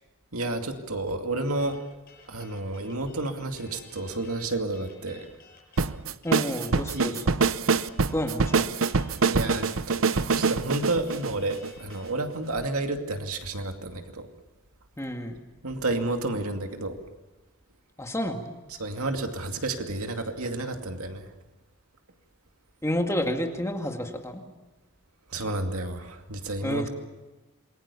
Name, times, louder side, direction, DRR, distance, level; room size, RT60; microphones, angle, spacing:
voice 1, 0.3-1.8 2.3-5.3 6.9-7.3 9.3-14.3 15.6-17.0 18.8-21.3 25.3-26.9, right 2 dB, 80° right, 5 dB, 2.4 m, -31 dB
sound 1, 1.6-12.1, left 5 dB, 45° left, 7.0 m, -53 dB
sound 2, 5.8-12.1, right 4 dB, 65° right, 0.7 m, -25 dB
voice 2, 6.2-7.2 8.1-8.7 15.0-15.4 18.0-18.6 22.8-24.4 26.6-26.9, left 1 dB, 15° left, 3 dB, 2.0 m, -30 dB
27.5 x 21.0 x 7.0 m, 1.2 s
head